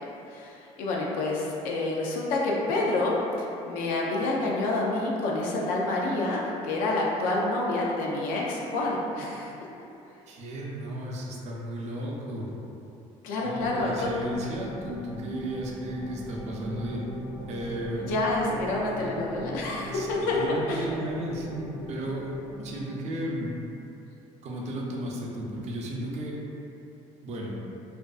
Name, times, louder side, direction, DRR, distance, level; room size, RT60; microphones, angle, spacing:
voice 1, 0.3-9.5 13.2-14.1 18.0-20.9, left 2 dB, 80° left, -3 dB, 0.5 m, -28 dB
voice 2, 10.3-12.5 13.4-17.1 17.5-18.1 19.9-20.1 20.3-23.5 24.4-26.4 27.2-27.6, right 1 dB, 50° right, -2 dB, 0.5 m, -34 dB
sound 1, 13.6-22.8, equal, 5° left, 0.4 m, -40 dB
2.4 x 2.3 x 2.3 m, 2.8 s
cardioid pair, 110°, 14 cm